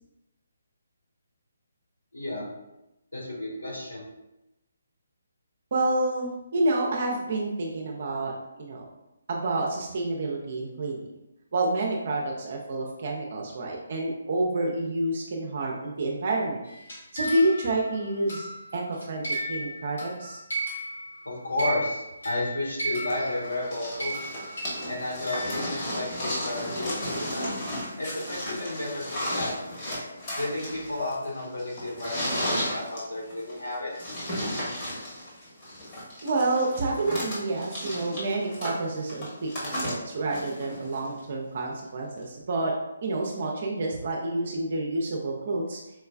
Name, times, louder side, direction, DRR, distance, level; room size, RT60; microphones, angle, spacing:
voice 1, 2.1-2.5 3.1-4.0 21.2-24.3 24.9-27.4 28.0-29.0 29.3-29.6 30.4-34.1, left 2 dB, 85° left, -5 dB, 1.4 m, -32 dB
voice 2, 5.7-8.3 8.6-8.9 9.3-11.0 11.5-16.6 17.1-20.4 36.2-42.7 43.0-45.8, right 2 dB, 50° right, -1 dB, 0.5 m, -28 dB
sound 1, 16.6-21.3 21.6-26.1, right 1 dB, 65° left, 0.9 m, -35 dB
sound 2, 23.1-41.2 42.2-42.3, equal, 30° left, 1.3 m, -34 dB
4.5 x 2.3 x 2.3 m, 0.93 s
figure-of-eight pair, 145°, 0 cm